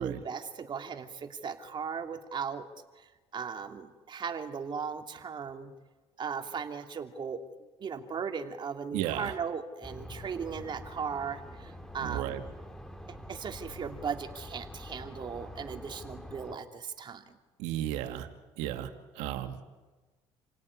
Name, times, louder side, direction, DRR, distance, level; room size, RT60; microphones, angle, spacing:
voice 1, 0.0-2.7 3.0-3.1 3.3-5.7 6.2-7.4 7.8-12.4 13.3-17.4, right 6 dB, 40° right, 5 dB, 2.8 m, -37 dB
voice 2, 8.9-9.3 12.0-12.4 17.6-18.3 18.6-19.6, right 12 dB, 90° right, 7 dB, 2.3 m, -34 dB
sound 1, 9.8-16.5, left 1 dB, 5° left, 2.5 m, -46 dB
28.5 x 17.5 x 9.8 m, 1.3 s
cardioid pair, 95°, 12 cm